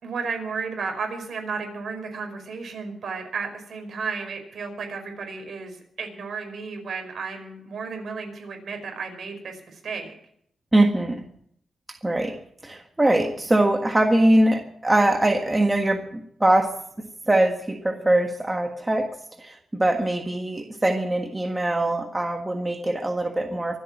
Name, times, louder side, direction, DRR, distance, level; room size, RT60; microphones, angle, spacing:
voice 1, 0.0-10.1, right 5 dB, 60° right, 5 dB, 5.0 m, -33 dB
voice 2, 10.7-11.2 12.0-12.4 12.6-16.7 17.3-19.1 19.4-23.8, right 1 dB, 15° right, 4 dB, 1.6 m, -22 dB
24.5 x 8.5 x 6.1 m, 0.69 s
cardioid pair, 115°, 0 cm